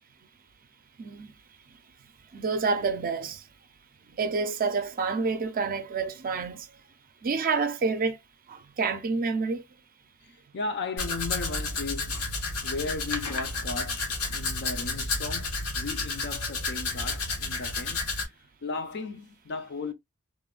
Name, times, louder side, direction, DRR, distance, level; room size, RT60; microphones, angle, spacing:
voice 1, 1.0-1.3 2.3-3.4 4.2-6.7 7.2-8.2 8.5-9.6, right 4 dB, 40° right, 0.4 m, -28 dB
voice 2, 10.5-12.2 12.6-18.2 18.6-19.9, left 3 dB, 55° left, 0.5 m, -36 dB
Domestic sounds home sounds, 11.0-18.2, left 3 dB, 85° left, 1.0 m, -31 dB
3.1 x 2.1 x 2.3 m
head